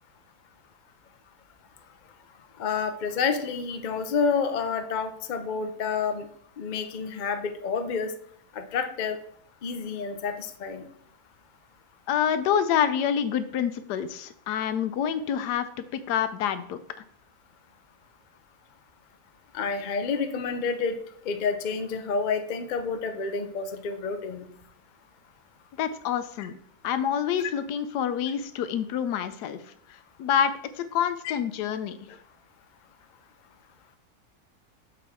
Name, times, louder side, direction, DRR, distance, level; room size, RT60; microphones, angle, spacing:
voice 1, 2.6-6.3 6.6-8.1 8.5-9.2 9.6-10.8 19.5-21.0 21.2-24.5 26.4-26.5 27.4-27.5 31.2-31.3, left 5 dB, 60° left, 7 dB, 0.4 m, -29 dB
voice 2, 12.1-15.7 15.9-16.8 25.8-26.5 26.8-29.6 30.2-32.2, left 8 dB, 90° left, 11 dB, 1.2 m, -27 dB
7.1 x 4.5 x 3.6 m, 0.63 s
omnidirectional pair, 1.7 m